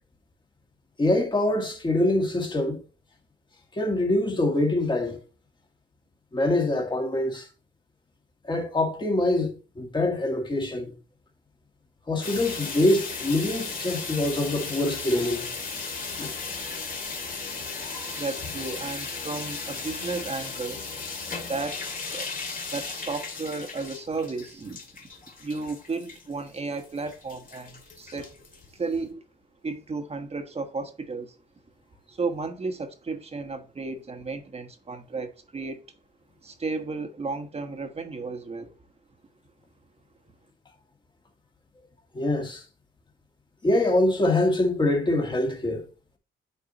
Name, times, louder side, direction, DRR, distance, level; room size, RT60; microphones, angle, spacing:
voice 1, 1.0-2.8 3.7-5.2 6.3-7.5 8.4-10.9 12.1-15.5 16.2-16.4 17.9-18.2 42.1-42.6 43.6-45.9, left 1 dB, 25° left, 2.1 m, -24 dB
sound 1, 12.2-29.1, left 4 dB, 45° left, 2.2 m, -36 dB
voice 2, 18.1-20.8 21.3-21.8 22.1-24.8 25.4-28.4 28.7-29.2 29.6-31.4 32.1-35.8 36.4-38.7, right 3 dB, 30° right, 1.3 m, -33 dB
8.9 x 4.6 x 2.9 m
cardioid pair, 90°, 20 cm